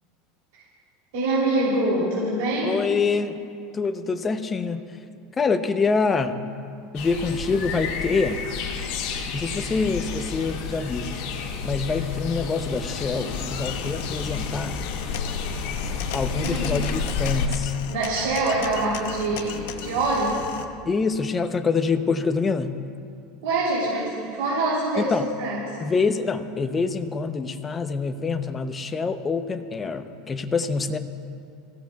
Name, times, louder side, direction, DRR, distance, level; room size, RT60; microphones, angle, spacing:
voice 1, 1.1-2.7 16.4-16.7 17.9-20.4 23.4-25.1 25.4-25.6, right 2 dB, 80° right, -6 dB, 3.2 m, -24 dB
voice 2, 2.6-3.4 3.7-4.8 5.4-6.4 6.9-8.4 9.3-11.1 11.6-14.8 16.1-17.7 20.9-22.8 25.0-25.3 25.8-31.0, left 4 dB, 20° left, 8 dB, 0.7 m, -25 dB
sound 1, 6.9-17.5, left 5 dB, 60° left, 1.8 m, -30 dB
sound 2, 13.3-20.7, left 8 dB, 80° left, 0.9 m, -36 dB
23.0 x 15.5 x 2.3 m, 2.4 s
supercardioid pair, 150°, 0 cm